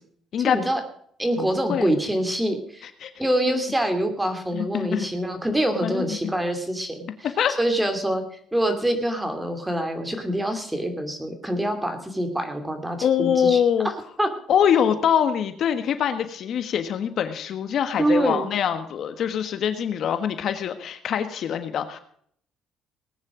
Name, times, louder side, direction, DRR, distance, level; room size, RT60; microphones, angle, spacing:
voice 1, 0.4-0.8 1.2-2.9 3.2-7.1 7.6-8.2 8.5-13.9 14.2-14.3 18.0-18.5, right 1 dB, 10° right, 7 dB, 2.8 m, -25 dB
voice 2, 1.4-2.0 3.0-3.1 4.5-5.1 5.8-6.3 7.2-7.6 13.0-13.9 14.5-22.0, left 8 dB, 55° left, 9 dB, 1.5 m, -24 dB
19.0 x 9.9 x 5.1 m, 0.63 s
cardioid pair, 130°, 0 cm